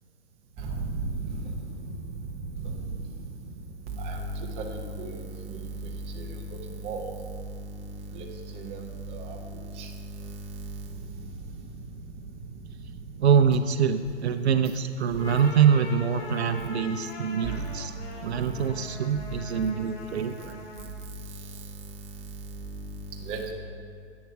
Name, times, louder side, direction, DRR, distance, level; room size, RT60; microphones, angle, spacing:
voice 1, 0.7-1.5 2.6-2.8 4.0-5.2 5.5-5.6 6.1-6.3 6.8-7.1 8.1-8.3 8.5-9.4 9.8-9.9 10.2-10.4 17.4-17.6 22.7-22.8 23.3-23.5, right 3 dB, 15° right, 1 dB, 1.0 m, -34 dB
voice 2, 13.2-17.9 18.2-20.6, right 7 dB, 70° right, 9 dB, 0.7 m, -24 dB
sound 1, 15.0-21.0, left 3 dB, 65° left, 2.3 m, -42 dB
12.0 x 8.3 x 4.7 m, 2.3 s
hypercardioid pair, 145°, 34 cm